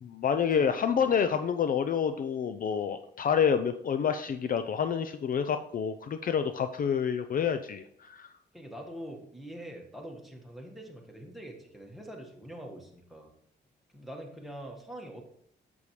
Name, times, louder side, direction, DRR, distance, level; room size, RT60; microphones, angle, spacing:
voice 1, 0.0-8.3, left 7 dB, 50° left, 9 dB, 0.5 m, -28 dB
voice 2, 8.5-13.3 13.9-15.2, right 1 dB, ahead, 0 dB, 1.6 m, -44 dB
8.1 x 7.0 x 3.2 m, 0.68 s
cardioid pair, 105°, 19 cm